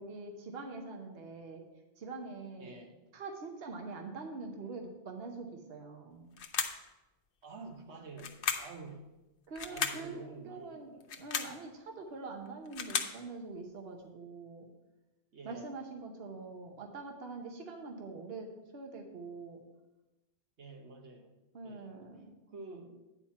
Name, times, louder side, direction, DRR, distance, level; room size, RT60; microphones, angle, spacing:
voice 1, 0.0-1.6 2.0-2.8 3.1-6.4 9.5-14.6 15.4-19.6 21.5-22.3, right 3 dB, 65° right, 3 dB, 1.2 m, -44 dB
voice 2, 2.6-3.0 7.4-9.0 9.7-11.0 15.3-15.7 20.6-21.4 21.6-21.9 22.5-23.0, right 3 dB, 85° right, 2 dB, 1.4 m, -48 dB
sound 1, 6.4-6.9 8.2-8.8 9.5-10.1 11.0-11.6 12.5-13.2, left 6 dB, 85° left, 1.0 m, -35 dB
9.5 x 4.3 x 5.8 m, 1.0 s
omnidirectional pair, 1.1 m